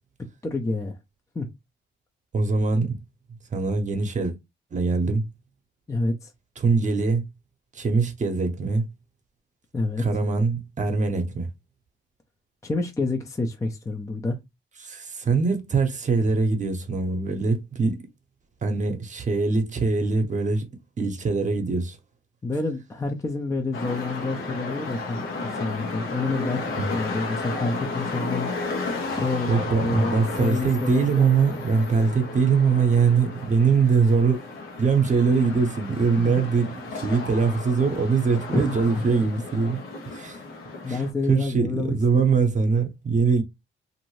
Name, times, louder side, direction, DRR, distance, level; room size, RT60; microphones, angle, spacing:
voice 1, 0.4-0.9 1.3-1.5 5.9-6.3 9.7-10.0 12.6-14.4 22.4-25.2 25.6-28.5 29.1-31.3 36.2-36.4 38.5-39.0 39.5-39.6 40.8-42.2, left 3 dB, 15° left, 0.5 m, -28 dB
voice 2, 2.3-3.0 3.5-4.3 4.7-5.3 6.6-7.3 7.7-8.9 10.0-11.5 14.8-18.0 18.6-20.6 21.0-22.0 26.8-26.9 29.5-34.4 34.8-39.8 40.1-40.4 40.9-43.4, right 4 dB, 40° right, 0.8 m, -22 dB
sound 1, 23.7-41.1, left 3 dB, 85° left, 0.9 m, -33 dB
2.6 x 2.6 x 3.0 m
cardioid pair, 90°, 20 cm